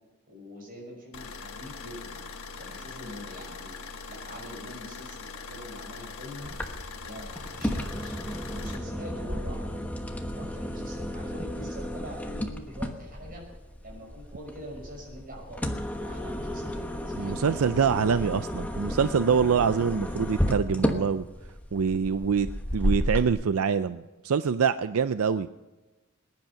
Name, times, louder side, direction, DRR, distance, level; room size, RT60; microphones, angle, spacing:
voice 1, 0.3-2.2 2.6-3.8 4.1-6.5 7.0-9.8 10.2-13.4 13.8-17.5, equal, 40° right, 0 dB, 6.0 m, -44 dB
sound 1, 1.1-8.8, left 4 dB, 80° left, 1.3 m, -42 dB
sound 2, 6.4-23.3, equal, 5° left, 1.1 m, -33 dB
voice 2, 17.2-21.2 21.7-22.5 22.7-25.5, right 6 dB, 85° right, 12 dB, 0.5 m, -25 dB
21.0 x 10.5 x 5.8 m, 1.1 s
head